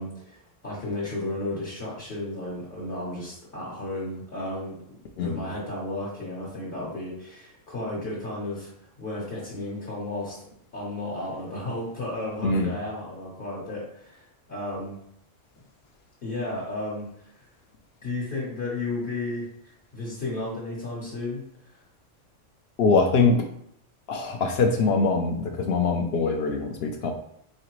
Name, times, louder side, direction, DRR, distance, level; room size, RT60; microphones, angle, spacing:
voice 1, 0.0-4.7 5.2-8.7 9.0-10.5 10.7-15.0 16.2-17.5 18.0-21.8, left 2 dB, 45° left, -7 dB, 1.1 m, -33 dB
voice 2, 5.2-5.5 12.4-12.7 22.8-23.4 24.1-27.1, left 4 dB, 65° left, 3 dB, 0.7 m, -23 dB
3.8 x 3.2 x 3.0 m, 0.70 s
omnidirectional pair, 1.3 m